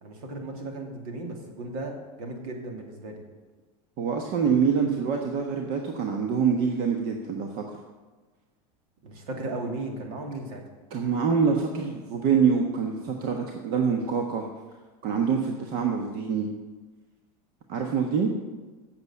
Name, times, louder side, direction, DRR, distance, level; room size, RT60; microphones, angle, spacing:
voice 1, 0.0-3.2 9.0-10.6, right 2 dB, 70° right, 3 dB, 2.4 m, -36 dB
voice 2, 4.0-7.8 10.9-14.5 15.0-16.5 17.7-18.3, right 6 dB, 50° right, 3 dB, 1.2 m, -25 dB
8.1 x 7.0 x 8.2 m, 1.3 s
supercardioid pair, 120°, 19 cm